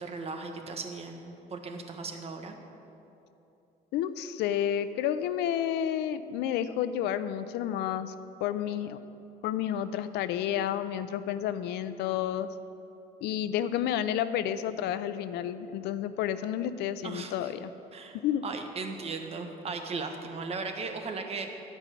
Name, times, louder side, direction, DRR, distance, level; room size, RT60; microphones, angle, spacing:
voice 1, 0.0-2.6 17.0-17.5 17.9-21.5, right 4 dB, 35° right, 4 dB, 1.2 m, -37 dB
voice 2, 3.9-8.1 8.4-9.0 9.4-12.5 13.2-17.7 18.2-18.5, left 10 dB, 80° left, 13 dB, 0.5 m, -30 dB
11.5 x 5.3 x 8.3 m, 2.9 s
cardioid pair, 110°, 17 cm